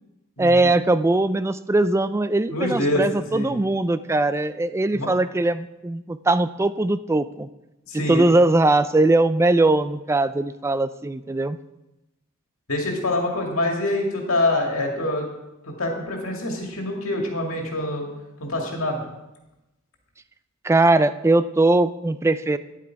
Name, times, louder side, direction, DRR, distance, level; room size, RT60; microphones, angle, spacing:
voice 1, 0.4-7.5 7.9-11.6 20.6-22.6, right 2 dB, 15° right, 13 dB, 0.3 m, -20 dB
voice 2, 2.5-3.5 4.9-5.1 7.9-8.2 12.7-15.3 15.8-18.1 18.4-19.0, left 1 dB, 85° left, 1 dB, 2.3 m, -25 dB
10.0 x 8.4 x 4.7 m, 0.96 s
head